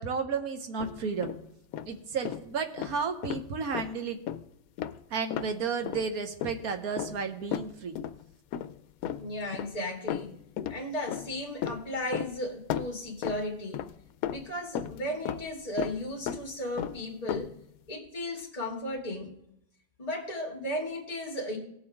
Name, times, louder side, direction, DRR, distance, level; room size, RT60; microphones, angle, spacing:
voice 1, 0.0-1.3 1.9-4.2 5.1-8.0, right 5 dB, 90° right, 7 dB, 1.6 m, -32 dB
sound 1, 0.8-1.4 1.7-1.9 2.3-2.5 2.8-3.5 3.7-3.9 4.3-4.4 4.8-5.0 5.3-5.5 5.8-6.1 6.4-6.7 7.0-8.2 8.5-8.8 9.0-9.8 10.1-10.8 11.1-12.4 12.7-14.0 14.2-15.5 15.8-16.0 16.3-16.5 16.8-17.6, left 10 dB, 80° left, 1.0 m, -35 dB
voice 2, 9.2-10.3 10.7-13.8 14.3-17.5 17.9-19.3 20.0-21.6, left 1 dB, 25° left, -1 dB, 2.2 m, -35 dB
18.0 x 7.2 x 3.5 m, 0.80 s
omnidirectional pair, 1.5 m